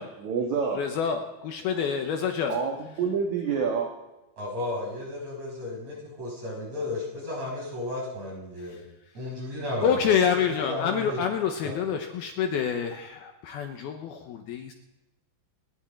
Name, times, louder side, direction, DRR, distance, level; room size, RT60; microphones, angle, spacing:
voice 1, 0.2-0.8 2.5-3.9, right 6 dB, 60° right, 1 dB, 2.2 m, -27 dB
voice 2, 0.7-2.5 9.8-14.7, left 7 dB, 70° left, 4 dB, 2.6 m, -27 dB
voice 3, 4.4-8.8 9.1-10.1 10.5-11.2 11.6-11.7, left 2 dB, 35° right, -4 dB, 7.2 m, -34 dB
29.0 x 11.0 x 4.4 m, 0.99 s
omnidirectional pair, 5.1 m